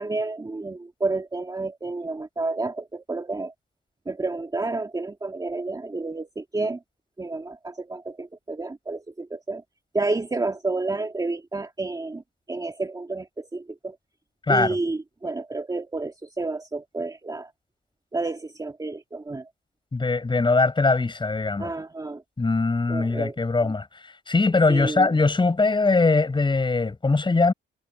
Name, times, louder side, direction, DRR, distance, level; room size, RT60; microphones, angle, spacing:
voice 1, 0.0-3.5 4.1-6.8 7.2-9.6 9.9-12.2 12.5-14.0 14.5-17.5 18.1-19.5 21.6-22.2 22.9-23.4 23.6-23.7 24.7-25.1, right 3 dB, 20° right, 2.0 m, -30 dB
voice 2, 14.5-14.8 19.9-21.7 22.4-27.5, left 3 dB, 25° left, 7.8 m, -21 dB
cardioid pair, 90°, 20 cm